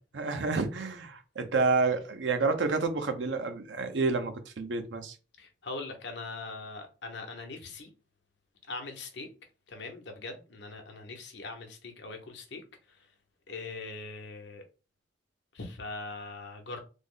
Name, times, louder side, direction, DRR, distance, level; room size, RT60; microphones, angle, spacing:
voice 1, 0.2-5.1, right 4 dB, 80° right, 0.6 m, -29 dB
voice 2, 5.4-7.9 8.7-9.3 9.7-13.1 13.5-14.6 15.5-16.8, left 3 dB, 65° left, 0.8 m, -41 dB
3.4 x 2.0 x 3.7 m
head